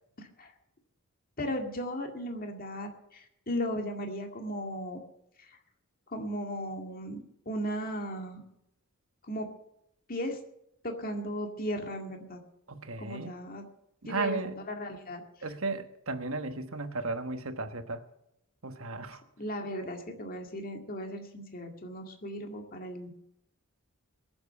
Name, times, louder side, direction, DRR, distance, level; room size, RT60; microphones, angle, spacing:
voice 1, 0.2-0.5 1.4-5.0 5.4-5.5 6.1-8.4 9.2-9.5 10.1-10.4 10.8-12.4 13.0-13.6 14.1-15.2 19.4-23.1, equal, 40° left, 3 dB, 2.1 m, -36 dB
voice 2, 12.7-13.3 14.0-14.6 15.4-18.0 18.6-19.2, right 3 dB, 65° right, 8 dB, 1.3 m, -35 dB
21.5 x 7.8 x 6.8 m, 0.81 s
head